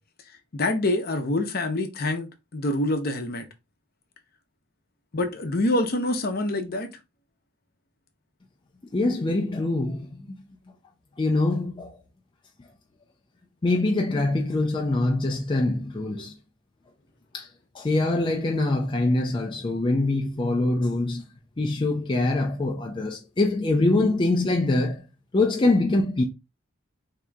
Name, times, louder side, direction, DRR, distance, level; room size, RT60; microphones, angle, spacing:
voice 1, 0.5-3.5 5.1-6.9, left 1 dB, 50° left, 0.7 m, -26 dB
voice 2, 8.9-10.3 11.2-12.0 13.6-16.3 17.3-17.5 17.7-21.3 21.6-25.0 25.3-26.2, left 2 dB, 25° left, 0.4 m, -24 dB
3.6 x 2.8 x 3.4 m
head